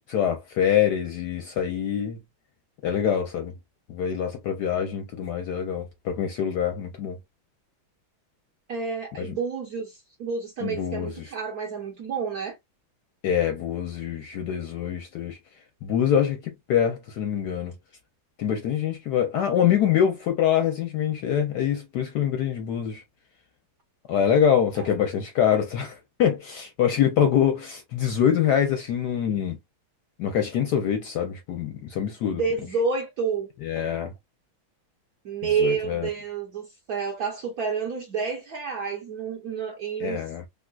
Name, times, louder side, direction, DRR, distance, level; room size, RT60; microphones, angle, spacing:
voice 1, 0.0-2.2 2.8-3.5 3.9-7.2 9.2-9.4 10.6-11.3 13.2-15.4 15.8-17.7 18.4-23.0 24.1-29.6 30.2-32.4 33.6-34.1 35.4-36.1 40.0-40.4, left 9 dB, 70° left, 1.0 m, -25 dB
voice 2, 8.7-12.6 24.8-24.9 32.3-33.5 35.2-40.2, right 5 dB, 70° right, 0.9 m, -29 dB
3.7 x 2.4 x 2.3 m
omnidirectional pair, 2.3 m